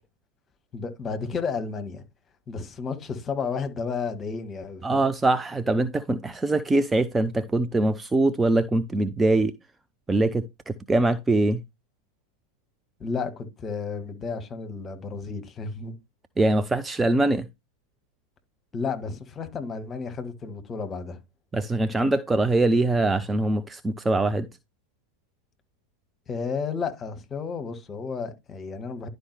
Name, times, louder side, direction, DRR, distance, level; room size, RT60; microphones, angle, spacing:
voice 1, 0.7-2.0 2.5-5.0 13.0-16.0 18.7-21.2 26.3-29.1, left 5 dB, 20° left, 1.8 m, -32 dB
voice 2, 4.8-9.5 10.1-11.6 16.4-17.5 21.5-24.5, right 2 dB, 10° right, 0.5 m, -23 dB
11.5 x 5.0 x 3.4 m
figure-of-eight pair, 90°, 0 cm